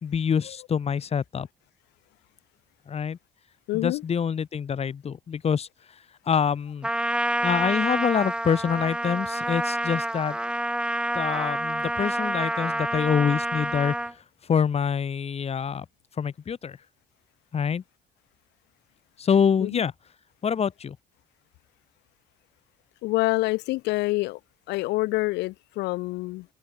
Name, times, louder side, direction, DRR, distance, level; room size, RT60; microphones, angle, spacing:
voice 1, 0.0-1.5 2.9-3.2 3.7-6.0 6.3-6.9 7.4-10.4 11.1-14.2 14.5-15.9 16.2-16.8 17.5-17.8 19.2-19.9 20.4-21.0, left 7 dB, 35° left, 2.1 m, -26 dB
voice 2, 3.7-4.0 19.6-19.8 23.0-24.4 24.7-26.5, left 20 dB, 90° left, 4.5 m, -26 dB
Trumpet, 6.8-14.1, right 1 dB, 5° right, 3.0 m, -28 dB
cardioid pair, 110°, 17 cm